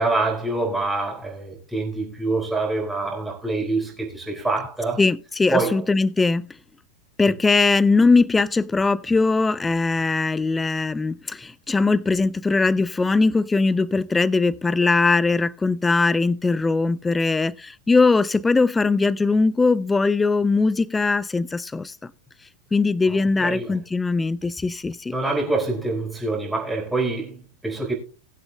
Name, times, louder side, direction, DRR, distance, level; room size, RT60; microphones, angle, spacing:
voice 1, 0.0-5.0 5.5-5.8 23.1-23.8 25.1-27.9, right 3 dB, 5° right, 4.4 m, -26 dB
voice 2, 5.0-6.5 7.2-22.1 22.7-25.1, left 3 dB, 10° left, 0.4 m, -20 dB
20.5 x 7.9 x 2.3 m
figure-of-eight pair, 90°, 0 cm